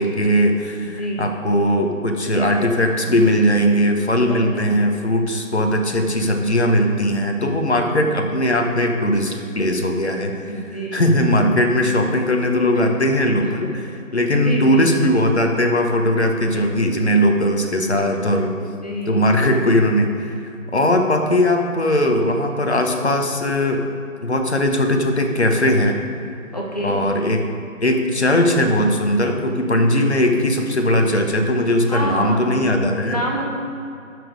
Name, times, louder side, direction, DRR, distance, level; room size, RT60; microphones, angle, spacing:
voice 1, 0.0-18.5 19.1-20.4 20.7-23.8 24.2-26.0 26.8-27.4 27.8-33.2, left 1 dB, 50° left, 3 dB, 1.1 m, -19 dB
voice 2, 4.3-4.8 7.7-7.9 10.5-11.0 12.7-12.8 14.3-14.9 18.8-19.3 26.5-26.9 31.9-32.6 33.0-33.4, equal, 30° left, -3 dB, 1.1 m, -27 dB
10.5 x 6.3 x 4.8 m, 2.6 s
figure-of-eight pair, 165°, 41 cm